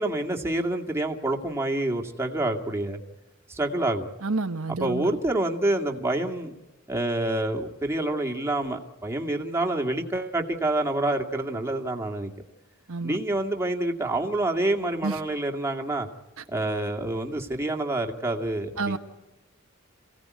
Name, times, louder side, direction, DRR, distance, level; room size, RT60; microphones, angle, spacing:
voice 1, 0.0-3.0 3.5-4.1 4.7-6.5 6.9-12.3 13.0-16.1 16.5-19.0, right 1 dB, 10° right, 2 dB, 2.2 m, -27 dB
voice 2, 4.2-5.1 12.9-13.2 15.0-15.1 18.8-19.0, right 3 dB, 75° right, 7 dB, 1.2 m, -29 dB
27.5 x 17.0 x 9.6 m, 1.1 s
head